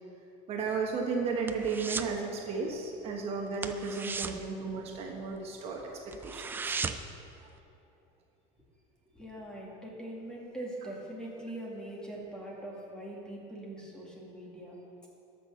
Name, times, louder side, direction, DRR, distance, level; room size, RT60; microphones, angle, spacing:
voice 1, 0.5-6.8 7.4-7.5, right 4 dB, 40° right, 1 dB, 1.2 m, -34 dB
sound 1, 0.6-2.2 2.5-2.8 3.0-3.2 3.5-5.4 5.8-5.9 6.1-7.2 7.6-7.7, right 4 dB, 15° right, 0.4 m, -37 dB
voice 2, 9.1-14.8, right 1 dB, 5° left, -3 dB, 2.0 m, -42 dB
12.5 x 6.1 x 6.3 m, 2.8 s
cardioid pair, 140°, 15 cm